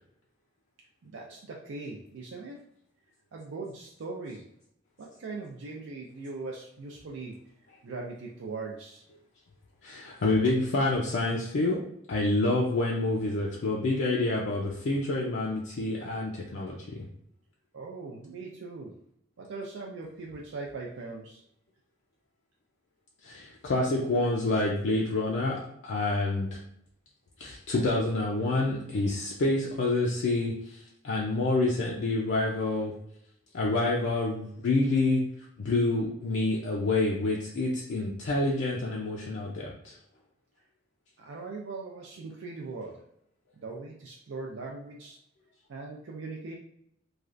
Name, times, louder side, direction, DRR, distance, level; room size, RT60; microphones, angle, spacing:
voice 1, 1.0-2.6 3.3-4.4 5.0-7.4 7.8-9.0 17.7-18.9 19.4-21.4 41.2-43.0 43.6-45.2 45.7-46.5, right 3 dB, 75° right, -1 dB, 0.4 m, -40 dB
voice 2, 9.8-11.8 12.1-17.1 23.2-26.5 27.4-32.9 33.5-35.2 35.6-39.9, left 2 dB, 65° left, -3 dB, 0.4 m, -28 dB
3.2 x 2.3 x 2.4 m, 0.73 s
head